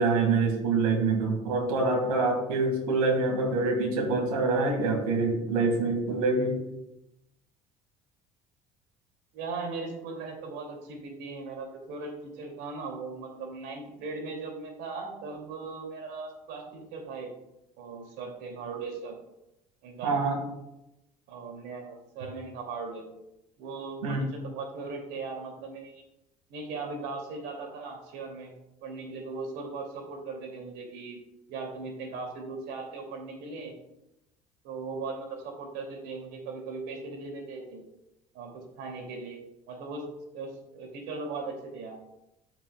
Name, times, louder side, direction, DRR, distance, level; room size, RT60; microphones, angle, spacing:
voice 1, 0.0-6.6 20.0-20.4 24.0-24.2, right 3 dB, 85° right, 3 dB, 1.9 m, -25 dB
voice 2, 9.3-17.3 17.8-19.2 19.8-20.3 21.3-23.1 23.6-26.0 26.5-28.5 28.8-31.2 31.5-33.7 34.6-37.8 38.3-39.4 39.7-40.0 40.3-42.0, right 4 dB, 70° right, 2 dB, 2.5 m, -38 dB
14.5 x 6.0 x 2.3 m, 0.88 s
hypercardioid pair, 65°, 18 cm